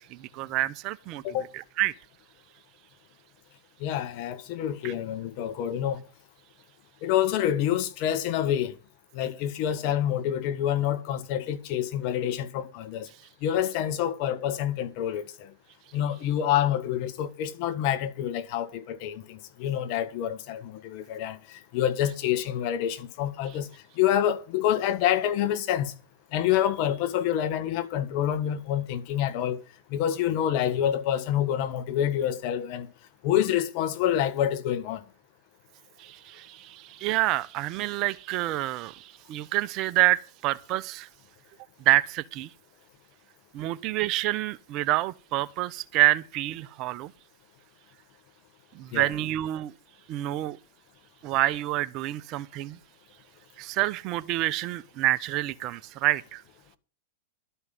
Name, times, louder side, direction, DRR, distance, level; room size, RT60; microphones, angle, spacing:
voice 1, 0.0-1.2 1.5-1.9 4.8-4.9 36.0-41.1 41.8-42.5 43.5-47.1 48.7-49.7 50.1-50.6 51.2-52.8 53.6-56.4, right 16 dB, 45° right, 0.8 m, -27 dB
voice 2, 3.8-6.0 7.0-8.7 9.1-13.1 13.4-15.5 15.9-23.7 23.9-25.9 26.3-29.6 29.9-32.9 33.2-35.0 48.9-49.1, left 10 dB, 50° left, 1.6 m, -27 dB
12.5 x 5.6 x 9.2 m
hypercardioid pair, 110°, 0 cm